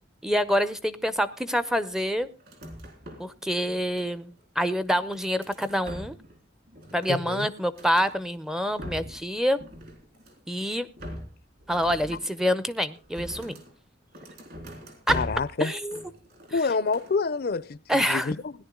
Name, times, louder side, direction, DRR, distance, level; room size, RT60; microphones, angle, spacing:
voice 1, 0.2-2.3 3.2-6.2 6.9-9.6 10.5-10.9 11.7-13.6 15.1-15.2 15.6-16.0 17.9-18.3, equal, 5° right, 0.5 m, -26 dB
sound 1, 2.4-3.4 3.7-4.4 4.9-6.4 6.7-8.1 8.6-9.3 9.6-10.5 11.0-13.7 14.1-15.5 15.9-16.6 16.9-17.2, equal, 55° right, 3.7 m, -41 dB
voice 2, 7.1-7.5 15.1-15.7 16.5-17.8 18.1-18.5, left 4 dB, 55° left, 0.5 m, -27 dB
17.0 x 10.5 x 3.7 m
head